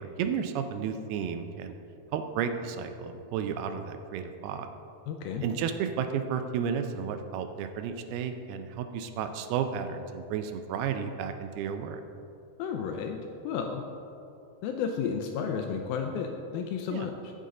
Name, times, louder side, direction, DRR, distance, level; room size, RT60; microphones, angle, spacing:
voice 1, 0.0-1.7 2.1-4.7 5.4-12.0 16.9-17.1, right 7 dB, 85° right, 7 dB, 2.4 m, -32 dB
voice 2, 5.1-5.4 12.6-13.2 13.4-13.8 14.6-17.3, left 6 dB, 85° left, 4 dB, 2.2 m, -32 dB
14.5 x 5.3 x 3.7 m, 2.6 s
omnidirectional pair, 4.6 m